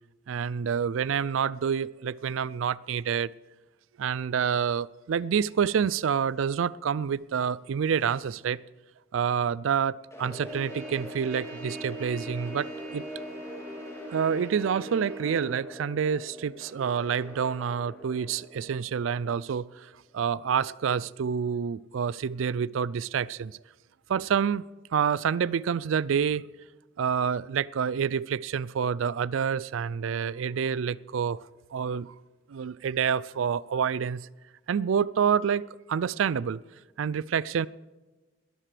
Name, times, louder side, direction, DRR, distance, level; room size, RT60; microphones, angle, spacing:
voice 1, 0.3-3.3 4.0-8.6 9.1-12.7 12.9-13.0 14.1-23.6 24.1-24.6 24.9-26.4 27.0-31.4 31.7-32.1 32.5-34.3 34.7-36.6 37.0-37.7, right 7 dB, 85° right, 0.4 m, -28 dB
sound 1, 10.1-20.2, left 1 dB, 15° left, 3.0 m, -43 dB
Trumpet, 10.4-15.5, right 2 dB, 40° right, 2.4 m, -42 dB
20.5 x 13.5 x 3.4 m
head